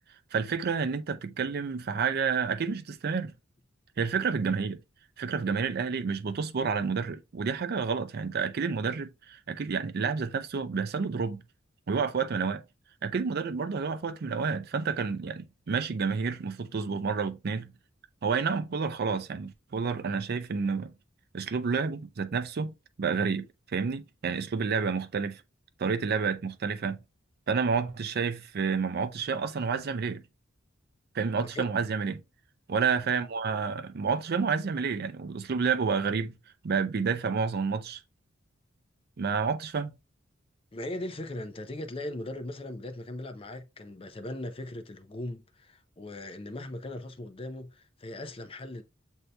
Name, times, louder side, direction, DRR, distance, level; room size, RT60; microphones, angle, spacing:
voice 1, 0.3-3.3 4.0-4.8 5.2-11.4 11.9-12.6 13.0-17.7 18.2-20.9 21.3-25.4 25.8-27.0 27.5-30.2 31.1-32.2 32.7-36.4 36.6-38.0 39.2-39.9, right 5 dB, 50° right, 0.4 m, -29 dB
voice 2, 31.3-31.6 40.7-48.8, left 1 dB, 30° left, 0.5 m, -39 dB
7.8 x 2.7 x 2.2 m
head